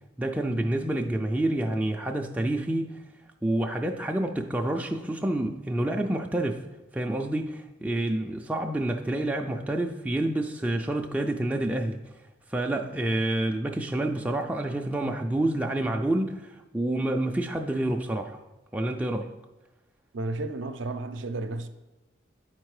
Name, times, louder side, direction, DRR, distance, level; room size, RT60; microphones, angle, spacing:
voice 1, 0.2-3.0 3.4-6.6 6.9-12.0 12.5-18.4 18.7-19.3, right 1 dB, 5° right, 0.3 m, -28 dB
voice 2, 20.1-21.7, right 2 dB, 70° right, 0.5 m, -32 dB
9.3 x 4.4 x 4.8 m
head